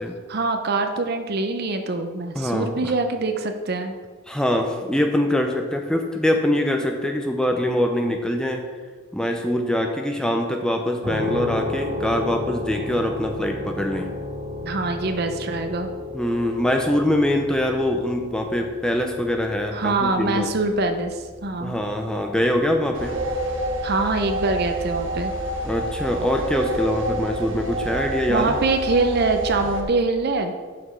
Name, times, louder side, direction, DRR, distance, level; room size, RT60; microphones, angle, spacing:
voice 1, 0.3-4.0 14.6-15.9 19.7-21.8 23.8-25.3 28.3-30.5, right 3 dB, 50° right, 6 dB, 0.6 m, -24 dB
voice 2, 2.4-2.9 4.3-8.6 9.1-14.1 16.1-20.5 21.6-23.2 25.6-28.6, left 1 dB, 5° left, 3 dB, 0.5 m, -23 dB
sound 1, 11.0-25.7, left 2 dB, 15° right, 2.1 m, -34 dB
CR - Wind create chord, 22.9-29.8, right 1 dB, 70° right, 1.3 m, -28 dB
6.1 x 5.0 x 5.5 m, 1.4 s
head